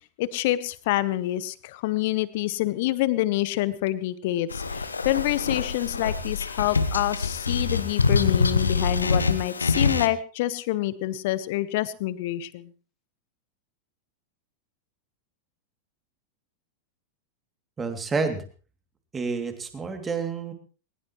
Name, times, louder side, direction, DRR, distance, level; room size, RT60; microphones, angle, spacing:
voice 1, 0.2-12.7, left 15 dB, 50° left, 17 dB, 1.1 m, -27 dB
sound 1, 4.5-10.1, left 4 dB, 75° left, 1.2 m, -25 dB
voice 2, 17.8-18.5 19.1-20.5, right 4 dB, 15° right, 6 dB, 2.8 m, -29 dB
21.0 x 20.0 x 3.2 m, 0.38 s
figure-of-eight pair, 90°, 0 cm